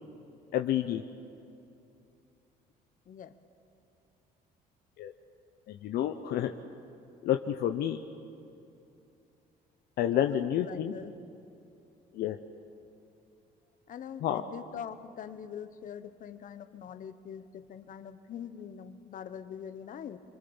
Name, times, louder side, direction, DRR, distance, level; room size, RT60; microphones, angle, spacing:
voice 1, 0.5-1.0 5.0-5.1 5.7-6.5 7.2-8.0 10.0-10.9 12.1-12.4 14.2-14.4, left 11 dB, 70° left, 7 dB, 0.8 m, -29 dB
voice 2, 10.2-11.1 13.9-20.2, left 8 dB, 50° left, 11 dB, 1.1 m, -43 dB
26.0 x 23.0 x 7.2 m, 2.7 s
cardioid pair, 110°, 17 cm